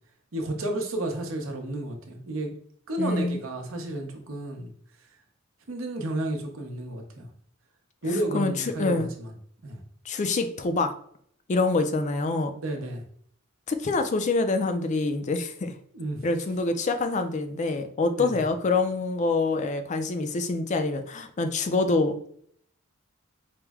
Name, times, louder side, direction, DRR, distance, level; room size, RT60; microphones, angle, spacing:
voice 1, 0.3-2.5 2.9-4.7 5.7-7.3 8.0-9.3 9.6-9.8 12.6-13.0 15.9-16.2 18.2-18.4, right 1 dB, 70° right, 2 dB, 0.8 m, -31 dB
voice 2, 3.0-3.4 8.3-8.5 8.8-9.1 10.1-10.9 11.5-12.5 13.7-15.8 16.2-22.3, left 3 dB, 35° left, 8 dB, 0.4 m, -26 dB
4.5 x 2.1 x 3.5 m, 0.63 s
head